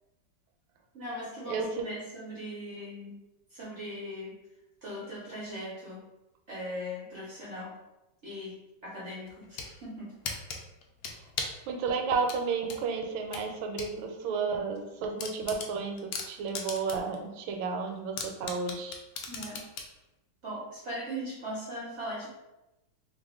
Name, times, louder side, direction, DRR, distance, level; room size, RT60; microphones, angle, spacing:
voice 1, 0.9-3.1 3.5-4.4 4.8-6.1 6.5-7.8 8.2-10.1 19.3-19.7 20.4-22.3, equal, 60° right, -7 dB, 0.7 m, -39 dB
voice 2, 1.5-1.9 11.7-16.0 16.3-19.0, right 5 dB, 80° right, 3 dB, 1.3 m, -32 dB
sound 1, 9.3-9.7 10.2-11.6 12.3-13.9 14.3-14.4 14.8-14.9 15.2-17.1 17.5-17.6 18.2-19.9, left 5 dB, 85° left, 0.8 m, -37 dB
2.9 x 2.4 x 3.5 m, 0.96 s
omnidirectional pair, 2.2 m